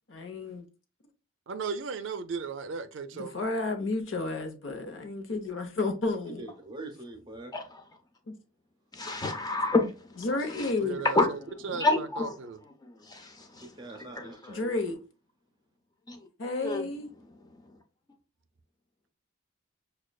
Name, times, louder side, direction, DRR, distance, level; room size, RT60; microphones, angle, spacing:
voice 1, 0.1-0.6 3.1-6.5 8.3-8.4 10.2-11.0 14.5-15.0 16.4-17.1, left 3 dB, 65° left, 0.8 m, -32 dB
voice 2, 1.5-3.3 10.8-12.6, right 5 dB, 60° right, 0.4 m, -36 dB
voice 3, 6.4-7.5 13.6-14.7, right 2 dB, 20° right, 0.7 m, -43 dB
voice 4, 8.9-10.2 11.1-11.3 11.8-12.3 13.0-13.7 14.2-14.5 16.1-16.2 16.6-16.9, left 2 dB, 20° left, 0.5 m, -28 dB
6.1 x 2.3 x 2.3 m
head